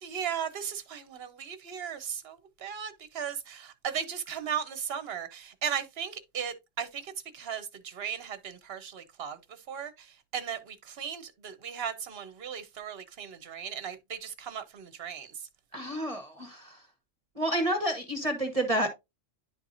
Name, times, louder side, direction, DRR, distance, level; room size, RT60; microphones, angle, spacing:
voice 1, 0.0-9.4 9.7-9.9 10.3-15.3, right 8 dB, 55° right, 1.1 m, -36 dB
voice 2, 15.7-16.8 17.4-18.9, right 1 dB, 30° right, 1.2 m, -29 dB
10.5 x 4.6 x 2.5 m
omnidirectional pair, 1.3 m